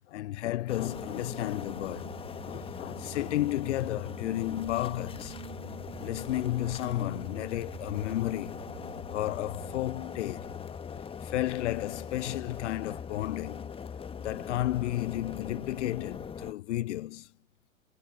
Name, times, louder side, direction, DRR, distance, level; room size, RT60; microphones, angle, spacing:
voice 1, 0.1-2.2 2.4-5.4 6.0-8.6 9.1-13.7 14.2-17.3, left 15 dB, 60° left, 0.5 m, -33 dB
sound 1, 0.7-16.5, left 6 dB, 15° left, 1.4 m, -41 dB
sound 2, 0.8-9.8, right 6 dB, 80° right, 3.1 m, -47 dB
figure-of-eight pair, 100°, 40 cm